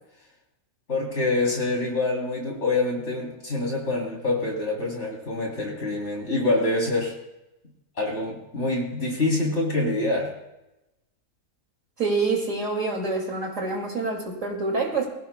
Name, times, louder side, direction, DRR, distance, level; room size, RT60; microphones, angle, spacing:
voice 1, 0.9-7.1 8.0-10.3, left 2 dB, 40° left, -1 dB, 3.6 m, -26 dB
voice 2, 12.0-15.1, right 3 dB, 50° right, 0 dB, 2.8 m, -26 dB
23.0 x 16.0 x 2.3 m, 0.94 s
omnidirectional pair, 1.7 m